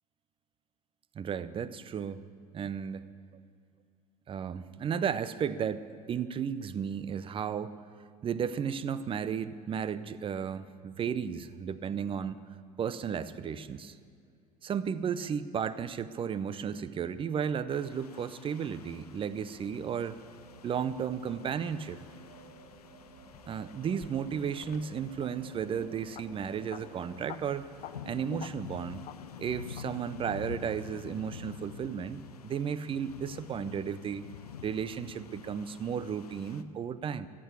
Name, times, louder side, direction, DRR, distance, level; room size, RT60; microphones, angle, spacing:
voice 1, 1.1-2.3 2.5-3.1 3.3-3.4 4.3-7.8 8.2-12.4 12.8-14.0 14.6-20.2 20.6-22.0 23.5-27.7 28.1-29.0 29.4-34.2 34.6-37.3, right 7 dB, 25° right, 15 dB, 0.6 m, -34 dB
sound 1, 17.7-36.6, left 8 dB, 80° left, 0.6 m, -48 dB
sound 2, 18.4-29.0 30.2-30.3, right 3 dB, 50° right, 3.0 m, -54 dB
sound 3, 22.2-25.3 26.1-26.2 26.5-26.8 27.2-27.4 27.7-27.9 28.4-28.7 29.1-29.2 29.8-29.9, left 13 dB, 40° left, 0.7 m, -48 dB
14.5 x 8.5 x 8.6 m, 2.2 s
figure-of-eight pair, 70°, 19 cm